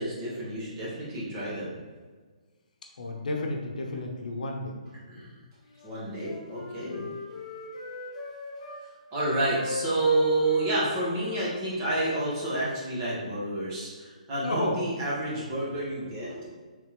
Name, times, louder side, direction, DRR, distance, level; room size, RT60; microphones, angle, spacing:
voice 1, 0.0-1.7 5.1-5.3 5.8-7.0 9.1-16.5, right 2 dB, 25° right, -7 dB, 1.3 m, -29 dB
voice 2, 3.0-4.7 14.4-14.8, left 2 dB, 75° left, 1 dB, 0.7 m, -31 dB
Wind instrument woodwind instrument, 5.7-8.8 9.3-12.5, left 3 dB, 45° left, 1.0 m, -40 dB
3.5 x 3.3 x 3.1 m, 1.4 s
hypercardioid pair, 155°, 4 cm